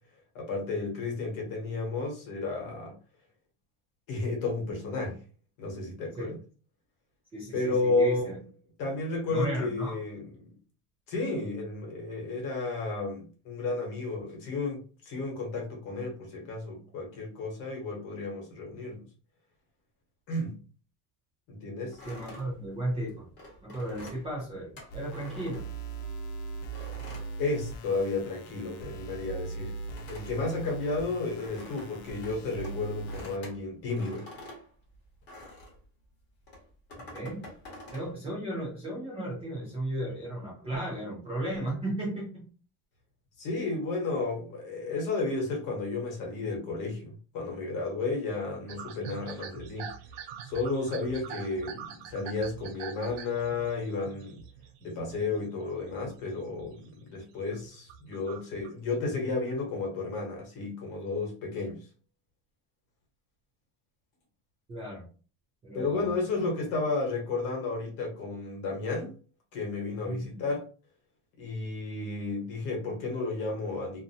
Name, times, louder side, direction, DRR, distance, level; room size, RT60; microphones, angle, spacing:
voice 1, 0.3-3.0 4.1-5.2 5.6-6.4 7.5-8.4 8.8-10.5 11.1-19.0 20.3-20.6 21.5-22.0 27.4-29.7 30.1-34.2 43.4-49.9 50.4-54.4 54.8-61.9 65.7-69.1 69.5-70.7 71.4-74.0, left 3 dB, 50° left, 1.1 m, -32 dB
voice 2, 7.3-8.4 9.3-10.0 22.0-23.3 23.6-25.7 37.1-37.4 37.9-42.5 64.7-65.1 65.6-66.5 70.0-70.4, right 1 dB, 15° right, 0.4 m, -35 dB
sound 1, 21.9-26.2 26.7-28.2 28.5-35.9 36.4-38.1, left 1 dB, 25° left, 0.9 m, -47 dB
sound 2, 24.9-33.4, right 3 dB, 70° left, 0.6 m, -40 dB
sound 3, 48.7-55.5 55.8-56.9 57.2-58.7, right 8 dB, 75° right, 0.5 m, -45 dB
2.6 x 2.1 x 2.7 m
cardioid pair, 180°, 40 cm